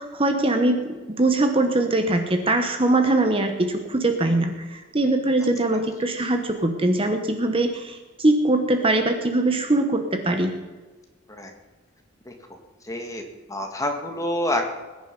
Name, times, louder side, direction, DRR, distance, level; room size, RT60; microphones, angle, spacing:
voice 1, 0.0-10.5, right 2 dB, 30° right, 6 dB, 1.1 m, -22 dB
voice 2, 12.8-13.2 13.5-14.6, left 1 dB, 15° left, 3 dB, 2.0 m, -27 dB
20.0 x 10.5 x 5.4 m, 1.3 s
head